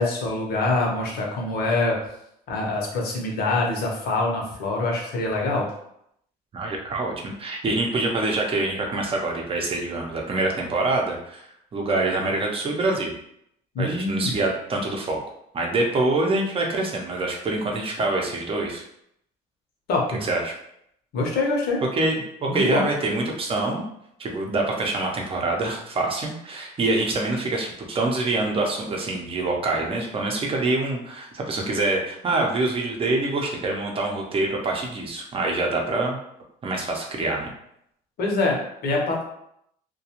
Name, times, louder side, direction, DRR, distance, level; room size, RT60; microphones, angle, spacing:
voice 1, 0.0-2.0 2.5-5.7 13.7-14.3 19.9-20.2 21.1-21.8 22.5-22.8 38.2-39.2, left 2 dB, 65° left, -1 dB, 0.8 m, -24 dB
voice 2, 6.5-11.4 11.7-13.1 13.8-15.2 15.5-18.8 20.2-20.5 21.9-23.8 24.2-36.2 36.6-37.5, right 2 dB, 35° right, 0 dB, 0.6 m, -25 dB
2.4 x 2.2 x 2.9 m, 0.74 s
cardioid pair, 110°, 17 cm